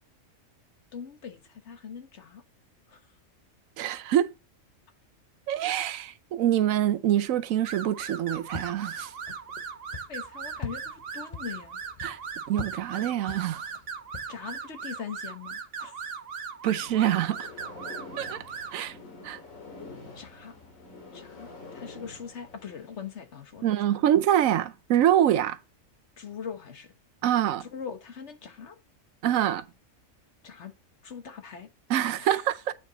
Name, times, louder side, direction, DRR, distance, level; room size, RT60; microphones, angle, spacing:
voice 1, 0.9-2.4 2.9-3.0 10.1-11.8 14.3-16.0 20.1-20.6 21.1-24.0 26.2-26.9 27.6-28.8 30.4-30.7 31.0-31.7 32.2-32.4, left 7 dB, 60° left, 1.4 m, -41 dB
voice 2, 3.8-4.3 5.5-9.1 12.0-12.2 12.5-13.6 16.6-17.5 18.2-18.4 18.7-19.0 19.2-19.4 23.6-25.6 27.2-27.7 29.2-29.6 31.9-32.7, right 11 dB, 85° right, 1.1 m, -25 dB
sound 1, 7.7-18.9, right 5 dB, 50° right, 1.0 m, -39 dB
sound 2, 8.0-14.7, left 5 dB, 35° left, 0.8 m, -44 dB
sound 3, 16.7-23.1, left 3 dB, 90° left, 2.3 m, -46 dB
8.4 x 5.2 x 4.0 m
omnidirectional pair, 1.4 m